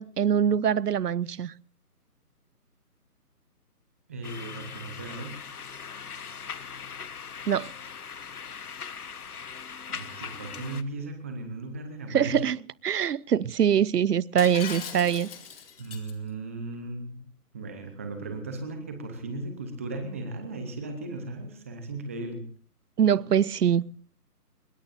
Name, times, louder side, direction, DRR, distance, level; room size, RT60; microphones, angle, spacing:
voice 1, 0.0-1.5 7.5-7.7 12.1-12.6 12.8-15.3 23.0-23.8, right 8 dB, 80° right, 0.8 m, -23 dB
voice 2, 4.1-5.4 9.9-12.5 15.8-17.2 17.5-22.4, right 2 dB, 10° right, 0.8 m, -36 dB
sound 1, 4.2-10.8, left 6 dB, 70° left, 1.2 m, -40 dB
Shatter, 14.4-16.1, left 7 dB, 35° left, 2.3 m, -39 dB
24.5 x 21.0 x 2.6 m
figure-of-eight pair, 160°, 47 cm